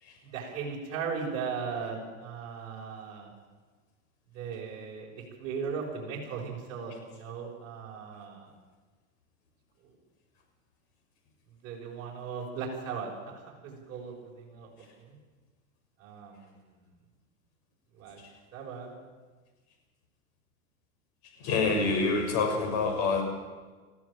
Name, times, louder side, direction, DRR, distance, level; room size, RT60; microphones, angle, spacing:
voice 1, 0.3-3.3 4.3-5.1 5.4-8.5 11.6-14.7 15.0-15.1 16.0-16.3 18.0-18.2 18.5-18.9, right 5 dB, 35° right, -3 dB, 6.7 m, -37 dB
voice 2, 21.2-23.2, left 4 dB, 45° left, 3 dB, 6.3 m, -27 dB
20.0 x 15.0 x 8.9 m, 1.4 s
supercardioid pair, 135°, 41 cm